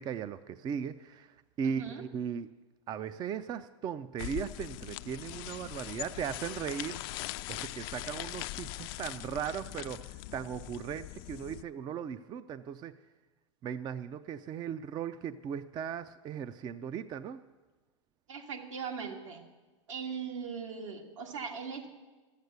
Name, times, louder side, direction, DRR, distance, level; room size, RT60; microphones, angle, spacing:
voice 1, 0.0-2.5 2.9-7.2 7.5-12.9 13.6-17.4, right 8 dB, 25° right, 13 dB, 0.4 m, -38 dB
voice 2, 1.6-2.0 18.3-19.4 19.9-21.9, right 6 dB, 80° right, 2 dB, 2.1 m, -39 dB
sound 1, 4.2-11.6, left 17 dB, 50° left, 0.4 m, -41 dB
13.0 x 8.2 x 8.0 m, 1.3 s
hypercardioid pair, 110°, 16 cm